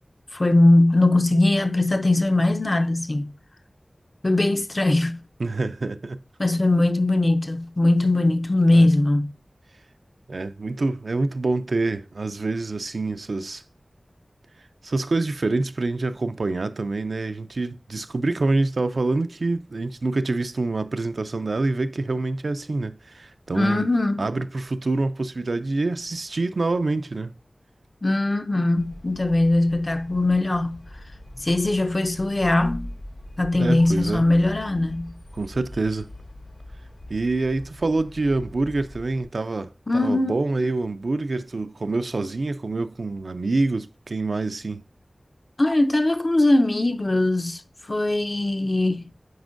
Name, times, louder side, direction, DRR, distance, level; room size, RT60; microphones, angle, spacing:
voice 1, 0.3-3.3 4.2-5.2 6.4-9.3 23.5-24.3 28.0-30.8 31.4-32.9 33.4-35.2 39.9-40.4 45.6-47.6 47.9-49.1, left 2 dB, 40° left, 0.5 m, -20 dB
voice 2, 5.4-6.2 8.7-8.9 10.3-13.6 14.8-23.9 24.2-27.3 33.6-34.3 35.3-36.1 37.1-44.8, right 3 dB, 80° right, 0.4 m, -26 dB
sound 1, 28.8-39.3, left 1 dB, 85° left, 2.1 m, -42 dB
9.5 x 4.3 x 2.5 m
wide cardioid pair, 65°, 0 cm